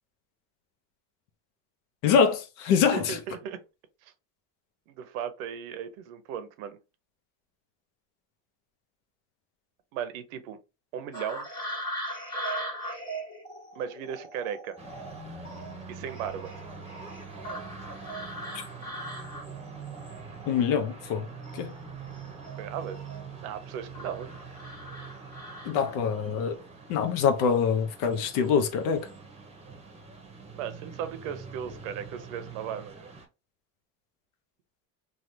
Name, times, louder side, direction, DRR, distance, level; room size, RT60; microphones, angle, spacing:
voice 1, 2.0-3.2 20.5-21.3 21.5-21.7 25.6-26.6 26.9-29.1, left 6 dB, 75° left, 0.8 m, -24 dB
voice 2, 2.9-3.6 4.0-4.1 4.9-6.8 9.9-10.6 10.9-11.5 12.9-13.0 13.7-14.8 15.9-16.5 22.6-23.0 23.4-24.3 30.6-33.1, right 8 dB, 90° right, 0.7 m, -36 dB
sound 1, 11.1-21.1 21.4-23.4 23.9-26.2 27.4-27.6 28.1-28.6 28.8-29.1, equal, 10° left, 1.5 m, -40 dB
sound 2, 14.8-33.3, right 5 dB, 15° right, 0.8 m, -44 dB
3.2 x 2.4 x 2.7 m
supercardioid pair, 120°, 39 cm